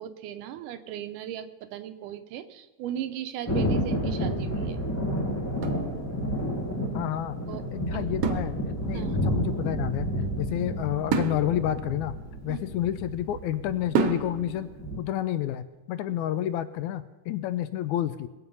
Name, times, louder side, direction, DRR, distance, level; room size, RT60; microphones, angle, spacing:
voice 1, 0.0-4.8 7.5-7.7 7.9-8.1 8.9-9.3 12.5-12.6, right 10 dB, 85° right, 10 dB, 2.4 m, -37 dB
Thunder, 3.5-15.0, equal, 20° left, 0.4 m, -31 dB
sound 1, 5.6-6.6 8.2-9.1 11.1-13.1 13.9-14.7, right 6 dB, 65° right, 1.6 m, -31 dB
voice 2, 6.9-7.4 7.7-8.6 8.9-10.1 10.4-12.2 12.4-14.7 15.0-18.3, left 12 dB, 80° left, 12 dB, 1.9 m, -29 dB
21.0 x 7.8 x 5.4 m, 1.2 s
omnidirectional pair, 3.6 m